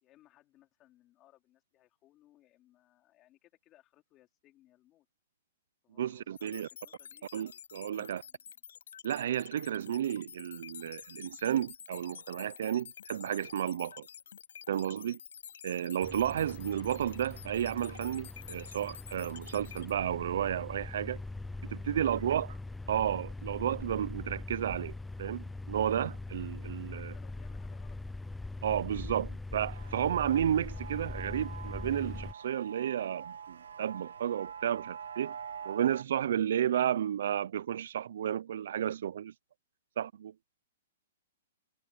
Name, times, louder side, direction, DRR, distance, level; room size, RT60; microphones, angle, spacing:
voice 1, 0.0-5.1 5.8-8.5 21.8-22.4 26.8-28.2, left 15 dB, 25° left, 4.1 m, -64 dB
voice 2, 6.0-6.7 7.3-8.2 9.0-14.1 14.7-15.2 15.6-21.2 21.7-22.5 22.9-24.9 25.2-27.1 28.6-35.3 35.7-39.3 40.0-40.3, right 10 dB, 65° right, 0.4 m, -32 dB
sound 1, 6.4-19.9, left 8 dB, 80° left, 5.4 m, -49 dB
sound 2, 16.0-32.3, left 2 dB, 5° left, 0.4 m, -42 dB
sound 3, 29.7-36.0, right 7 dB, 85° right, 1.2 m, -45 dB
hypercardioid pair, 160°, 0 cm